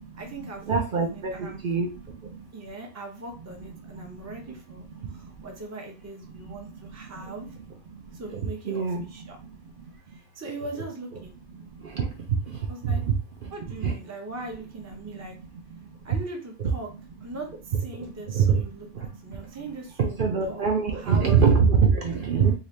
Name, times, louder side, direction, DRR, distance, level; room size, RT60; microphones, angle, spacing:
voice 1, 0.1-1.6 2.5-7.5 8.1-9.4 10.3-11.3 12.7-13.0 13.5-15.3 16.0-16.9 17.2-21.3, right 2 dB, 20° right, 2 dB, 0.6 m, -40 dB
voice 2, 0.7-1.9 8.6-9.0 11.9-12.0 12.5-12.6 12.8-13.1 13.8-13.9 16.6-16.7 18.3-18.6 20.2-22.5, right 6 dB, 55° right, 2 dB, 0.7 m, -22 dB
2.8 x 2.6 x 3.2 m, 0.33 s
omnidirectional pair, 1.2 m